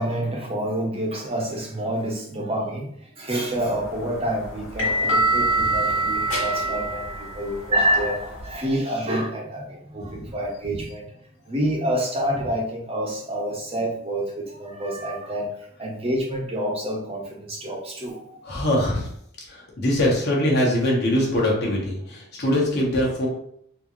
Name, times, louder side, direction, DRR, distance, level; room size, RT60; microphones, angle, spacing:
voice 1, 0.0-11.1 11.5-15.5 15.8-18.4, right 1 dB, 25° right, -1 dB, 0.6 m, -27 dB
sound 1, 3.7-8.5, right 2 dB, 70° left, 1.3 m, -25 dB
voice 2, 18.4-19.1 19.5-23.3, left 1 dB, 50° left, -3 dB, 1.1 m, -23 dB
3.8 x 2.4 x 3.0 m, 0.67 s
head